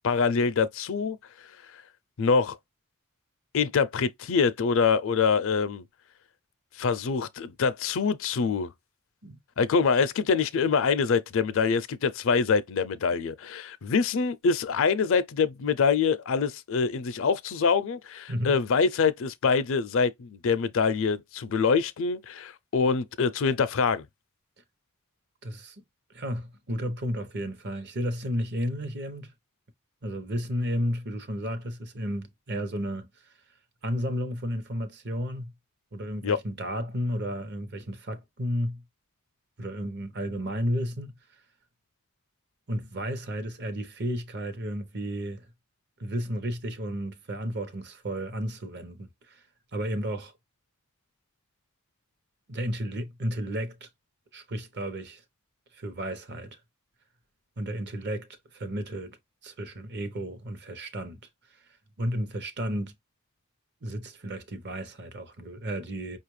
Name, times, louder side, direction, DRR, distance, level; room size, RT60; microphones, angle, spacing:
voice 1, 0.0-1.2 2.2-2.6 3.5-5.8 6.8-8.7 9.6-24.1 36.2-36.4, left 5 dB, 65° left, 0.4 m, -25 dB
voice 2, 25.4-25.8 26.1-29.3 30.0-33.1 33.8-35.5 35.9-38.8 39.6-41.1 42.7-45.5 46.0-49.4 49.7-50.3 52.5-53.9 54.3-55.2 55.7-56.6 57.6-59.2 59.4-61.2 62.0-62.9 63.8-66.2, equal, 50° right, 0.8 m, -32 dB
5.3 x 2.4 x 3.1 m
head